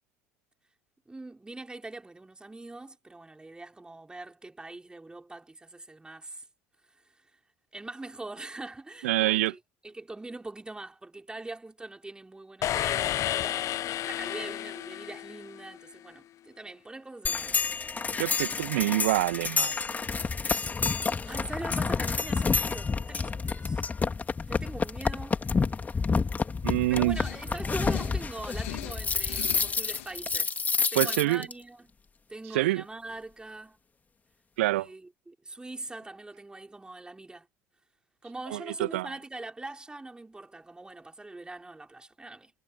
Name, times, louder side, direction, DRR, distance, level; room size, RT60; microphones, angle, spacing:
voice 1, 1.1-6.5 6.9-7.4 7.7-17.7 20.9-23.9 24.5-25.4 26.9-30.6 30.9-31.9 32.3-33.8 34.8-37.5 38.2-42.5, right 2 dB, 10° right, 5.7 m, -43 dB
voice 2, 9.0-9.5 18.2-19.7 26.6-27.2 31.0-31.5 32.5-32.8 34.6-34.9 38.5-39.1, right 17 dB, 65° right, 1.8 m, -26 dB
sound 1, 12.6-15.8, left 13 dB, 40° left, 1.1 m, -31 dB
sound 2, 17.3-31.5, left 5 dB, 20° left, 3.2 m, -29 dB
sound 3, 27.1-30.2, left 19 dB, 65° left, 3.5 m, -42 dB
figure-of-eight pair, 65°, 8 cm